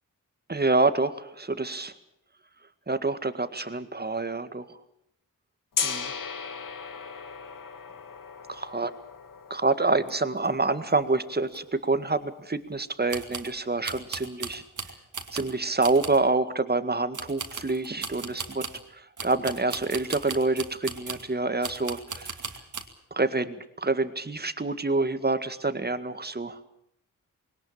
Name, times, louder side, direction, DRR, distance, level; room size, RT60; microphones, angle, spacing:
voice 1, 0.5-1.9 2.9-4.8 5.8-6.1 8.5-8.9 9.5-14.6 15.3-18.6 18.9-22.3 23.1-26.6, right 3 dB, 30° right, 11 dB, 1.9 m, -27 dB
Gong, 5.7-11.7, left 6 dB, 75° left, 1.8 m, -37 dB
sound 1, 10.1-10.2 10.4-10.5 10.9-11.0 11.5-11.6 13.1-13.5 13.8-15.5 15.8-16.3 17.1-18.8 19.2-21.3 21.6-22.9, right 5 dB, 65° right, 2.5 m, -37 dB
20.5 x 18.5 x 8.8 m, 0.75 s
cardioid pair, 50°, 33 cm